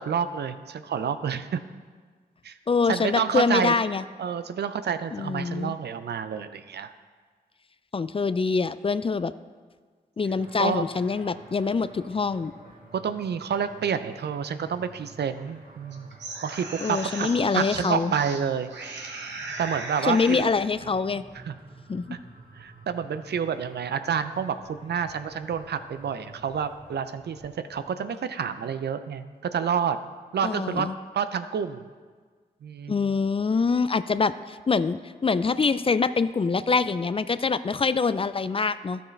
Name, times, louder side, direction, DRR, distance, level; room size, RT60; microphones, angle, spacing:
voice 1, 0.0-1.6 2.4-2.6 2.9-3.8 4.2-6.9 10.6-10.8 12.9-16.1 16.4-17.3 17.5-18.7 19.6-20.5 21.3-21.5 22.1-22.2 22.5-30.0 30.3-30.9 31.1-31.8 32.6-33.0, right 7 dB, 70° right, 11 dB, 0.5 m, -29 dB
voice 2, 2.7-4.0 5.1-5.7 7.9-9.3 10.2-12.5 16.8-18.1 20.0-21.2 21.9-22.1 30.4-30.9 32.9-39.0, left 4 dB, 30° left, 14 dB, 0.4 m, -25 dB
sound 1, 10.3-27.9, right 2 dB, 55° right, 1.9 m, -50 dB
sound 2, 15.9-18.4 18.7-20.5, right 3 dB, 85° right, 1.0 m, -38 dB
12.0 x 6.5 x 3.3 m, 1.5 s
cardioid pair, 40°, 18 cm